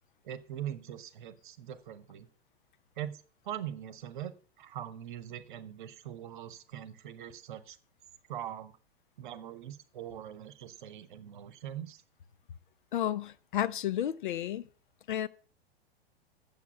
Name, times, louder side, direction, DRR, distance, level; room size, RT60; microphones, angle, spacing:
voice 1, 0.2-2.3 3.0-4.3 4.6-7.8 8.3-8.7 9.2-12.0, right 11 dB, 55° right, 1.0 m, -42 dB
voice 2, 12.9-14.7 15.1-15.3, left 11 dB, 55° left, 0.5 m, -32 dB
8.4 x 7.4 x 5.3 m
figure-of-eight pair, 100°, 30 cm